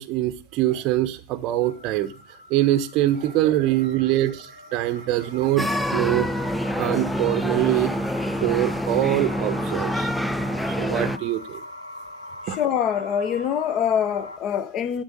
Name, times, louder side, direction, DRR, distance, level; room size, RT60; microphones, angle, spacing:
voice 1, 0.0-2.1 2.5-7.9 8.4-10.1 10.6-11.6 12.5-12.6, right 14 dB, 40° right, 0.7 m, -24 dB
sound 1, 1.6-14.4, left 1 dB, 85° left, 0.8 m, -41 dB
sound 2, 5.6-11.2, equal, ahead, 0.4 m, -26 dB
voice 2, 12.5-15.0, left 9 dB, 35° left, 0.8 m, -24 dB
11.5 x 5.3 x 5.2 m
figure-of-eight pair, 90°, 0 cm